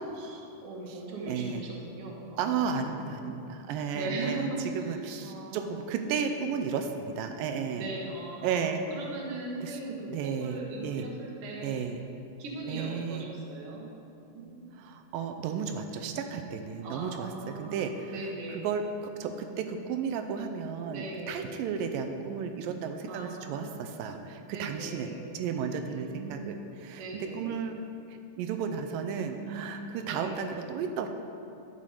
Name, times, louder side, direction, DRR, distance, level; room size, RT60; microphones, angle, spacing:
voice 1, 0.2-3.3 3.9-6.3 7.7-11.8 12.4-13.9 14.3-14.7 16.8-18.7 20.9-21.5 23.1-23.9 24.5-25.3 25.8-26.6 26.9-27.6 29.2-30.5, right 2 dB, 50° right, -2 dB, 2.0 m, -39 dB
voice 2, 1.3-1.7 2.4-4.5 4.8-7.9 8.4-8.8 9.6-9.8 10.1-11.1 11.6-12.0 12.7-13.4 14.8-17.3 17.6-18.1 18.6-27.8 28.4-31.1, right 6 dB, 85° right, 6 dB, 2.3 m, -33 dB
11.5 x 7.4 x 4.9 m, 2.6 s
omnidirectional pair, 4.1 m